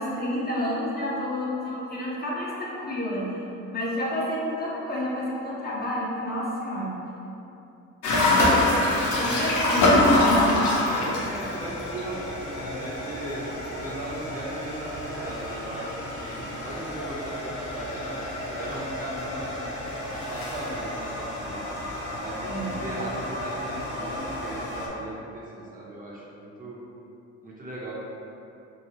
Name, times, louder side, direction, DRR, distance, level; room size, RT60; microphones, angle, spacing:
voice 1, 0.0-3.3 3.7-6.9 8.5-8.7 9.2-10.1 22.5-22.7, left 1 dB, 30° left, -6 dB, 0.7 m, -30 dB
sound 1, 8.0-24.9, left 1 dB, 90° left, 0.6 m, -27 dB
voice 2, 8.4-9.6 10.9-19.8 20.1-21.6 22.1-26.8 27.4-27.9, right 1 dB, 30° right, -5 dB, 0.6 m, -37 dB
2.9 x 2.8 x 2.8 m, 2.8 s
cardioid pair, 90°, 30 cm